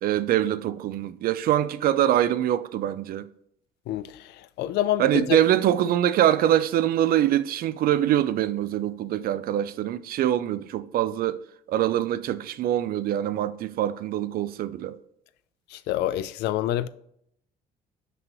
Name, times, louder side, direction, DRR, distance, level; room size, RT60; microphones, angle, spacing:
voice 1, 0.0-3.3 5.0-11.4 11.7-15.0, right 11 dB, 60° right, 0.5 m, -24 dB
voice 2, 4.6-5.4 15.9-16.9, left 13 dB, 80° left, 0.4 m, -26 dB
6.0 x 5.3 x 3.0 m
cardioid pair, 110°, 17 cm